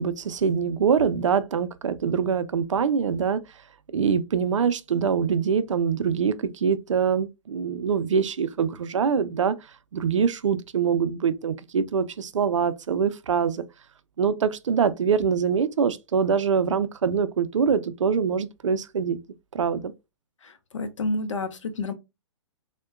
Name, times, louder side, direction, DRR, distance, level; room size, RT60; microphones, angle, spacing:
voice 1, 0.0-3.4 3.9-9.5 9.9-13.6 14.2-19.2 19.5-19.9, right 6 dB, 85° right, 0.4 m, -24 dB
voice 2, 20.4-21.9, left 2 dB, 85° left, 0.6 m, -30 dB
3.6 x 2.1 x 2.3 m
hypercardioid pair, 130°, 16 cm